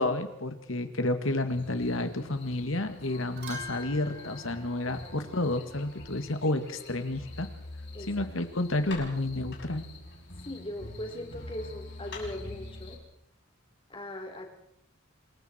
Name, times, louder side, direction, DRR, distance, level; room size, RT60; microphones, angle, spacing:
voice 1, 0.0-7.5 8.1-9.8, left 2 dB, 75° left, 8 dB, 2.2 m, -30 dB
sound 1, 1.5-13.0, left 2 dB, 60° left, 6.6 m, -45 dB
sound 2, 3.3-5.7 8.2-9.1, left 1 dB, 55° right, 7.3 m, -46 dB
voice 2, 7.9-8.3 10.4-13.0 13.9-14.5, left 1 dB, 25° left, 3 dB, 4.2 m, -39 dB
27.0 x 22.5 x 4.6 m, 0.76 s
head